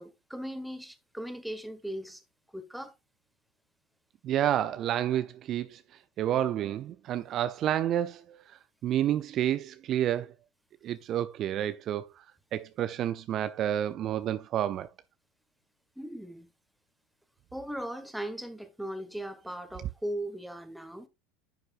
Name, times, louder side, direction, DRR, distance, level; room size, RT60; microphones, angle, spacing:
voice 1, 0.0-2.2 2.5-2.9 16.0-16.5 17.5-21.1, right 1 dB, ahead, 1.6 m, -38 dB
voice 2, 4.2-5.8 6.2-10.3 10.8-12.2 12.5-14.9, right 11 dB, 45° right, 0.5 m, -30 dB
10.0 x 7.7 x 2.5 m
hypercardioid pair, 80°, 0 cm